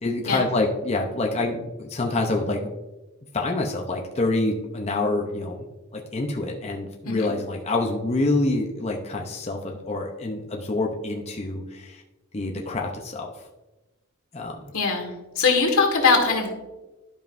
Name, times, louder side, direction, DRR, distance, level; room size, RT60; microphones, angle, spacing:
voice 1, 0.0-2.7 3.3-5.6 5.9-12.0 12.3-13.5 14.3-14.6, left 2 dB, 30° left, 0 dB, 0.6 m, -27 dB
voice 2, 14.7-16.5, left 4 dB, 80° left, 2 dB, 1.8 m, -21 dB
12.0 x 5.3 x 2.6 m, 1.1 s
head